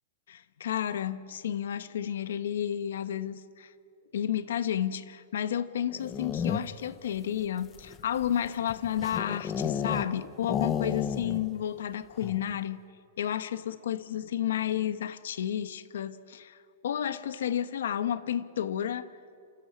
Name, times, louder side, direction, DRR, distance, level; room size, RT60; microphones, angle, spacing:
voice 1, 0.3-3.7 4.1-12.8 13.2-16.6 16.8-19.1, left 10 dB, 75° left, 1.0 m, -31 dB
sound 1, 5.9-6.9 7.6-10.1 10.4-11.5 11.8-11.9 12.2-12.5, left 8 dB, 15° left, 0.7 m, -32 dB
28.5 x 14.0 x 8.7 m
supercardioid pair, 175°, 0 cm